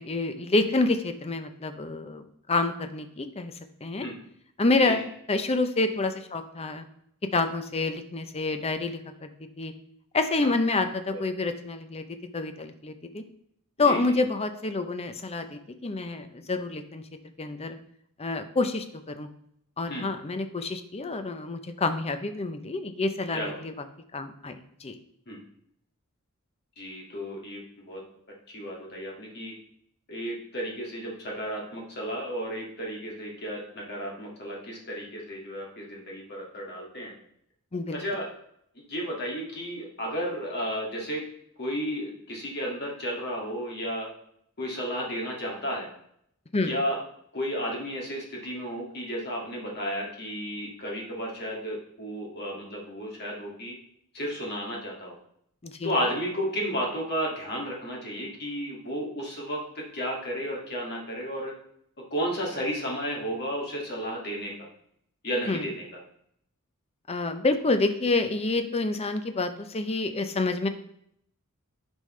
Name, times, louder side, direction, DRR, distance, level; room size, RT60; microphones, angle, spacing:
voice 1, 0.0-2.2 2.5-3.5 3.8-4.0 4.6-6.8 7.3-9.3 9.6-9.7 10.1-12.0 12.3-13.2 13.8-17.0 17.4-17.7 18.2-19.3 19.8-23.7 24.1-25.0 37.7-38.0 46.5-46.7 55.6-55.9 65.5-65.6 67.1-70.7, left 3 dB, 30° left, 8 dB, 0.6 m, -28 dB
voice 2, 26.8-27.6 27.9-28.0 28.5-29.5 30.1-37.1 37.9-38.3 38.9-41.2 41.6-44.1 44.6-45.9 46.6-47.0 47.3-53.7 54.1-55.1 55.8-59.6 59.9-61.5 62.1-64.5 65.2-65.8, equal, 50° left, -2 dB, 2.1 m, -33 dB
9.8 x 5.4 x 3.2 m, 0.71 s
head